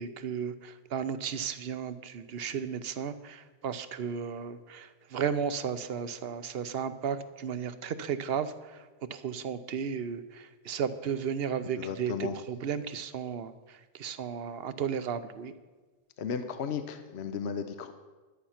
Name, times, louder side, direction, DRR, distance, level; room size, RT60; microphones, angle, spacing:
voice 1, 0.0-8.8 9.1-15.5, right 7 dB, 60° right, 12 dB, 0.9 m, -34 dB
voice 2, 11.8-12.4 16.2-17.9, left 6 dB, 70° left, 9 dB, 1.0 m, -35 dB
11.0 x 9.8 x 5.8 m, 1.3 s
omnidirectional pair, 1.2 m